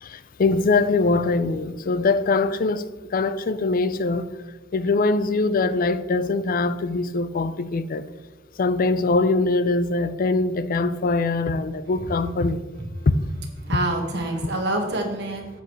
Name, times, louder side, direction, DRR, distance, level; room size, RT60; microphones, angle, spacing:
voice 1, 0.0-4.3 4.7-8.0 8.6-12.6 13.1-13.2, left 3 dB, 45° left, 0.4 m, -22 dB
voice 2, 13.6-15.6, right 1 dB, 60° right, 1.6 m, -26 dB
9.8 x 8.0 x 3.2 m
head